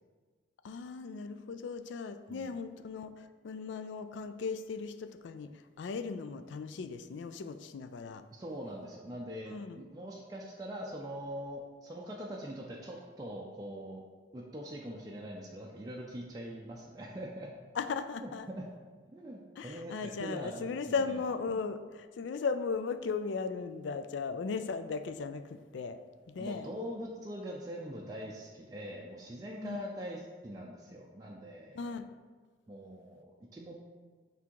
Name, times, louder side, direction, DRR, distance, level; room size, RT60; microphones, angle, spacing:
voice 1, 0.6-5.5 5.8-8.2 9.4-9.8 17.8-18.5 19.6-26.0 26.3-26.7 29.6-29.8 31.7-32.1, left 5 dB, 70° left, 10 dB, 0.3 m, -37 dB
voice 2, 8.3-14.0 14.3-17.5 18.2-18.7 19.1-20.7 21.5-21.7 26.4-31.9 32.7-33.7, equal, 20° right, -3 dB, 0.4 m, -43 dB
6.0 x 3.5 x 4.6 m, 1.4 s
head